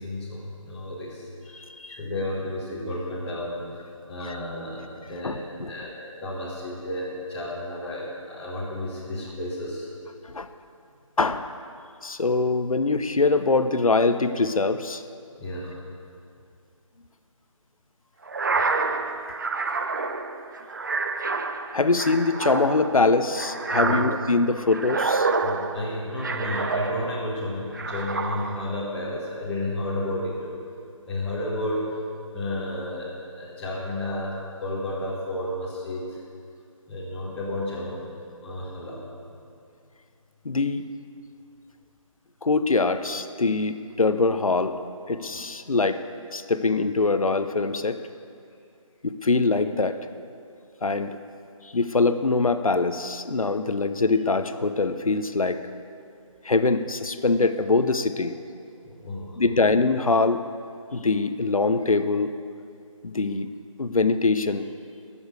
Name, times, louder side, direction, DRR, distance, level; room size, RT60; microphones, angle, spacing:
voice 1, 0.0-1.6 1.9-5.9 6.2-9.9 15.4-15.8 18.5-18.6 23.8-24.0 25.4-30.6 31.1-32.0 32.3-34.3 34.6-36.2 36.9-38.1 38.4-39.0 58.8-59.7, left 1 dB, 5° left, -10 dB, 1.7 m, -32 dB
voice 2, 1.5-2.0 4.3-4.4 5.2-5.7 10.2-10.5 11.2-11.5 12.0-15.0 21.7-25.3 40.4-40.8 42.4-44.8 45.1-46.0 46.3-48.0 49.0-50.0 50.8-51.2 51.7-55.6 56.4-58.4 59.4-60.4 60.9-62.4 63.0-63.5 63.8-64.7, left 3 dB, 85° left, 10 dB, 0.8 m, -23 dB
sound 1, 18.3-27.3 27.7-28.8, right 4 dB, 35° right, 0.5 m, -28 dB
13.5 x 7.2 x 8.2 m, 2.4 s
figure-of-eight pair, 165°, 17 cm